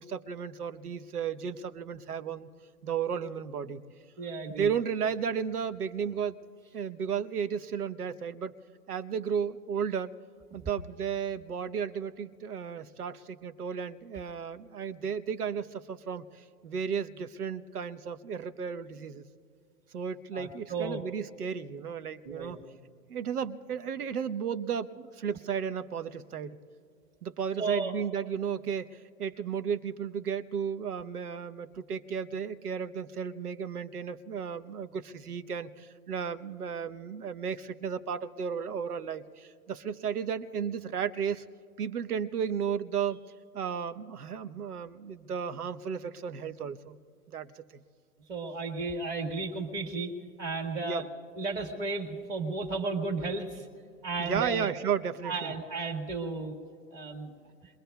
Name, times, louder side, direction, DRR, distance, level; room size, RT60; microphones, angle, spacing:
voice 1, 0.0-2.5 2.8-3.8 4.6-6.4 6.7-8.5 8.9-10.1 10.5-19.2 19.9-22.6 23.1-26.6 27.2-41.4 41.8-43.2 43.5-47.0 47.3-47.8 50.8-51.0 54.2-55.5, right 7 dB, 80° right, 12 dB, 1.0 m, -34 dB
voice 2, 4.2-4.7 20.3-21.0 22.2-22.6 27.6-27.9 48.3-50.1 50.4-51.1 51.4-53.7 54.0-54.7 55.2-56.5 56.9-57.4, right 3 dB, 25° right, 2 dB, 1.6 m, -34 dB
29.5 x 21.5 x 2.3 m, 2.3 s
hypercardioid pair, 130°, 45 cm